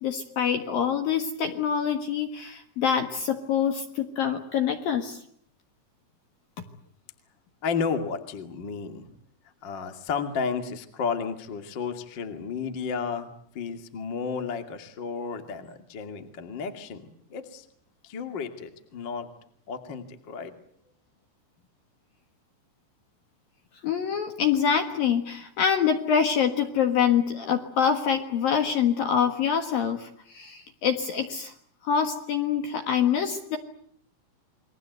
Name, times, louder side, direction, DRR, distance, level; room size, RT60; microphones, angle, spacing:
voice 1, 0.0-5.2 23.8-31.5 31.8-33.6, left 7 dB, 60° left, 6 dB, 2.6 m, -25 dB
voice 2, 7.6-9.1 9.6-13.3 13.5-17.0 17.3-17.6 18.0-19.3 19.7-20.5, left 5 dB, 40° left, 7 dB, 1.7 m, -32 dB
29.0 x 22.5 x 8.0 m, 0.65 s
omnidirectional pair, 5.9 m